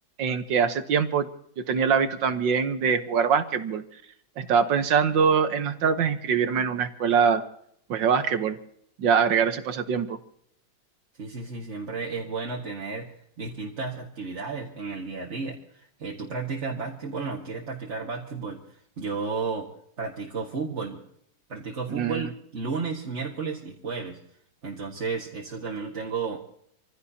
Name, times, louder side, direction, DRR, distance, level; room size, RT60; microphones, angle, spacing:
voice 1, 0.2-1.3 1.7-3.8 4.4-7.4 7.9-8.6 9.0-10.2 21.9-22.3, right 6 dB, 65° right, 9 dB, 1.6 m, -23 dB
voice 2, 11.2-13.1 13.4-19.7 20.0-21.0 21.5-24.2 24.6-26.4, right 4 dB, 35° right, -3 dB, 1.8 m, -33 dB
27.0 x 16.0 x 2.8 m, 0.68 s
omnidirectional pair, 2.3 m